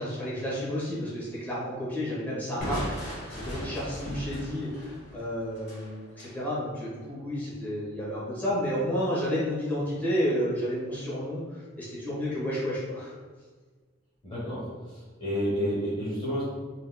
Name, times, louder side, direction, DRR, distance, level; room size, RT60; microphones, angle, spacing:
voice 1, 0.0-13.1, equal, 10° left, -8 dB, 1.3 m, -31 dB
Crushing, 2.6-6.4, equal, 55° left, 1.5 m, -37 dB
voice 2, 14.2-16.4, equal, 25° left, -8 dB, 1.0 m, -30 dB
4.1 x 3.9 x 2.2 m, 1.4 s
head